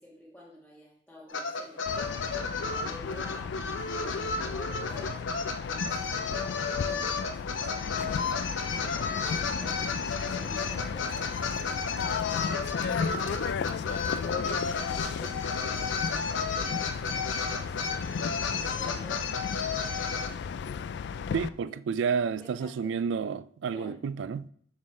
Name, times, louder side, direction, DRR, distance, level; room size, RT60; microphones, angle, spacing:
voice 1, 0.0-3.6 4.0-5.2 5.6-7.4 8.9-15.4 15.9-19.6 21.6-21.7 22.1-22.9 23.7-24.0, left 1 dB, 5° left, 1.4 m, -51 dB
sound 1, 1.3-20.3, left 4 dB, 75° left, 0.8 m, -33 dB
sound 2, 1.9-21.5, left 6 dB, 60° left, 0.3 m, -35 dB
voice 2, 21.3-24.5, right 6 dB, 70° right, 0.3 m, -30 dB
7.2 x 6.4 x 3.2 m
head